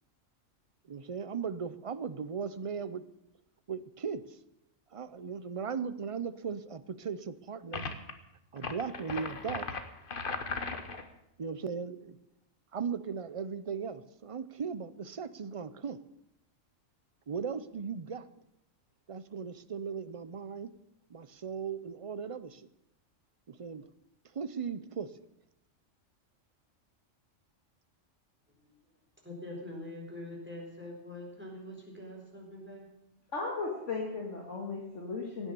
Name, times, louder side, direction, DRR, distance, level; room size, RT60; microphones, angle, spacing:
voice 1, 0.9-3.0 3.7-4.3 4.9-7.9 8.5-9.7 11.4-12.2 12.7-16.0 17.3-18.3 19.1-20.7 21.1-22.7 23.5-23.9 24.3-25.1, right 6 dB, 40° right, 14 dB, 0.5 m, -37 dB
sound 1, 7.7-8.1 8.6-11.1, left 4 dB, 45° left, 1.3 m, -37 dB
voice 2, 29.2-32.8, left 1 dB, 10° right, -1 dB, 4.2 m, -44 dB
voice 3, 33.3-35.5, left 3 dB, 65° left, -1 dB, 2.5 m, -36 dB
16.5 x 9.8 x 6.8 m, 0.84 s
omnidirectional pair, 1.3 m